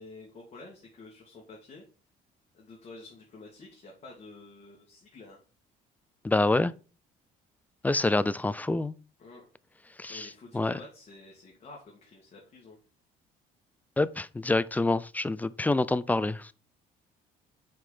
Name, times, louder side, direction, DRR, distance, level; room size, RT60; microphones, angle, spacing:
voice 1, 0.0-1.8 2.5-5.4 9.2-9.4 10.1-12.8, left 3 dB, 40° left, 2.0 m, -49 dB
voice 2, 6.2-6.7 7.8-9.0 10.0-10.3 10.5-10.8 14.0-16.5, left 2 dB, 10° left, 0.3 m, -26 dB
5.0 x 4.4 x 5.5 m
cardioid pair, 110°, 17 cm